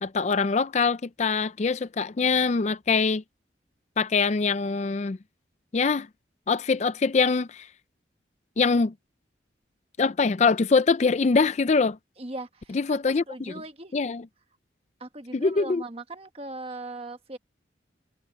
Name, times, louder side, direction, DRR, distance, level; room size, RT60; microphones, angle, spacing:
voice 1, 0.0-3.2 4.0-5.2 5.7-6.1 6.5-7.7 8.6-8.9 10.0-12.0 12.7-13.2 13.9-14.2 15.3-15.8, left 4 dB, 35° left, 0.4 m, -23 dB
voice 2, 12.2-13.9 15.0-17.4, right 2 dB, 30° right, 1.4 m, -39 dB
head